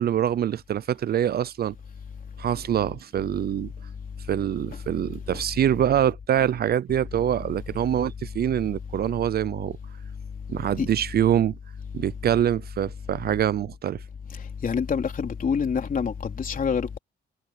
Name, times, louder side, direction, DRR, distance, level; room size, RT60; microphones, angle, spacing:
voice 1, 0.0-1.7 2.4-3.7 4.3-9.8 10.5-11.6 11.9-14.0, right 10 dB, 50° right, 0.5 m, -25 dB
voice 2, 14.3-17.0, left 6 dB, 45° left, 3.7 m, -27 dB
cardioid pair, 90°, 20 cm